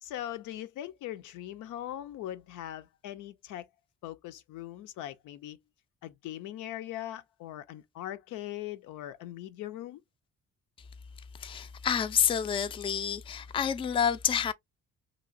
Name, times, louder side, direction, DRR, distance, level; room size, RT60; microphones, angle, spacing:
voice 1, 0.0-3.7 4.0-5.6 6.0-10.0, left 13 dB, 85° left, 0.5 m, -40 dB
voice 2, 11.3-14.5, left 8 dB, 20° left, 0.3 m, -28 dB
2.9 x 2.7 x 2.4 m
cardioid pair, 90°, 30 cm